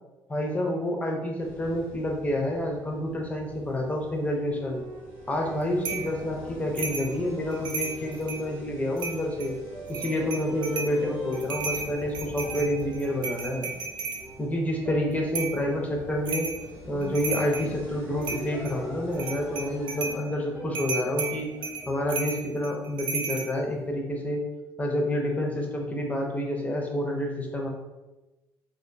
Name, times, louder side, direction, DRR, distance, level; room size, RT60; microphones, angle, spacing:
voice 1, 0.3-4.8 5.3-9.6 9.9-13.7 14.4-16.5 16.9-21.5 21.9-24.4 24.8-27.7, left 1 dB, 15° left, 1 dB, 0.5 m, -28 dB
sound 1, 1.4-20.2, left 1 dB, 85° left, 0.6 m, -47 dB
sound 2, 4.0-22.6, right 2 dB, 15° right, 0.9 m, -43 dB
sound 3, 5.8-6.1 6.8-7.1 7.5-8.5 9.0-9.5 9.9-11.0 11.3-14.2 15.3-15.6 16.3-16.6 17.0-17.7 18.2-18.8 19.1-20.2 20.7-23.5, right 4 dB, 60° right, 0.4 m, -33 dB
2.4 x 2.2 x 2.5 m, 1.1 s
cardioid pair, 95°, 9 cm